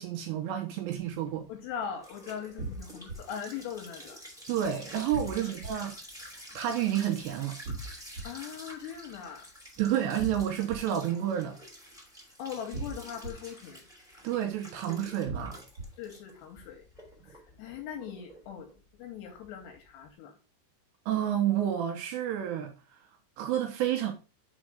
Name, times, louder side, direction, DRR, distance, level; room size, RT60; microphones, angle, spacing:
voice 1, 0.0-1.5 4.5-5.9 6.5-7.6 9.8-11.6 14.2-15.6 21.1-22.7 23.4-24.1, right 10 dB, 80° right, 2.6 m, -30 dB
sound 1, 1.0-20.1, equal, ahead, 1.2 m, -49 dB
voice 2, 1.5-4.2 5.4-5.5 8.2-9.5 12.4-13.9 16.0-16.8 17.2-18.7 19.0-20.4, left 8 dB, 80° left, 2.6 m, -40 dB
sound 2, 2.6-3.2 5.1-5.7 7.6-8.2 10.2-10.8 12.7-13.3 15.3-15.8, right 3 dB, 50° right, 1.7 m, -37 dB
6.3 x 4.5 x 4.8 m
omnidirectional pair, 5.5 m